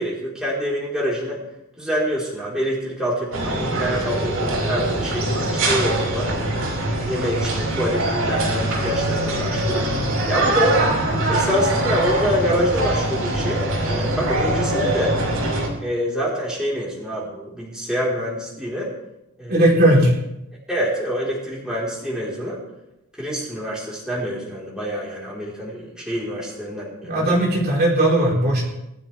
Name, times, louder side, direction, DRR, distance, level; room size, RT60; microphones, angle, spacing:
voice 1, 0.0-1.4 1.8-6.3 6.9-9.9 10.3-10.8 11.3-15.2 15.8-18.9 19.4-19.7 20.7-22.6 23.2-27.3, equal, 5° right, -6 dB, 4.0 m, -26 dB
sound 1, 3.3-15.7, right 1 dB, 70° right, 4.9 m, -23 dB
voice 2, 19.5-20.1 27.0-28.6, right 1 dB, 45° right, -4 dB, 4.0 m, -17 dB
20.0 x 12.5 x 3.4 m, 0.87 s
head